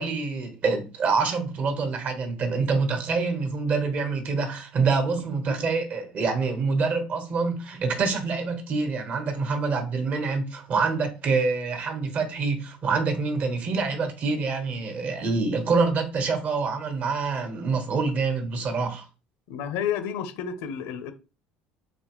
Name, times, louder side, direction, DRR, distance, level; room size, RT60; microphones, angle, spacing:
voice 1, 0.0-19.1, right 4 dB, 45° right, 1.2 m, -26 dB
voice 2, 19.5-21.1, left 8 dB, 80° left, 0.8 m, -31 dB
4.2 x 3.5 x 3.0 m
supercardioid pair, 110°, 4 cm